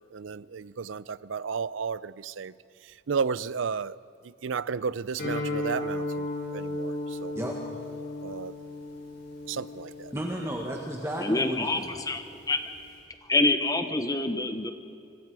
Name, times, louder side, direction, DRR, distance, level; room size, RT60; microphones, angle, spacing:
voice 1, 0.1-2.5 3.1-4.0 4.4-7.3 8.2-8.5 9.5-10.1, right 5 dB, 85° right, 18 dB, 0.5 m, -33 dB
Guitar, 5.2-12.9, left 2 dB, 60° left, 7.9 m, -36 dB
voice 2, 10.1-12.0, equal, 15° right, 0 dB, 1.6 m, -33 dB
voice 3, 11.2-12.6 13.3-14.7, left 2 dB, 20° left, 8 dB, 1.0 m, -26 dB
25.5 x 24.5 x 4.8 m, 2.5 s
head